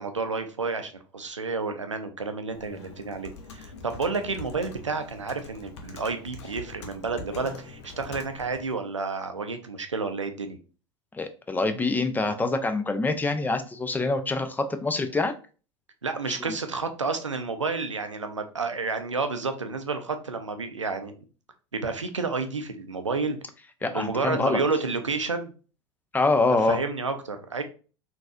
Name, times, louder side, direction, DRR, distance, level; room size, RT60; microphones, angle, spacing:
voice 1, 0.0-10.6 16.0-21.1 21.7-23.4 23.8-25.5 26.6-27.6, right 4 dB, 90° right, 7 dB, 0.4 m, -30 dB
Computer keyboard, 2.5-8.7, left 3 dB, 65° left, 0.7 m, -43 dB
voice 2, 11.1-15.3 16.3-16.5 23.8-24.6 26.1-26.8, left 3 dB, 10° left, 8 dB, 0.4 m, -25 dB
3.9 x 2.6 x 2.4 m, 0.36 s
figure-of-eight pair, 80°, 15 cm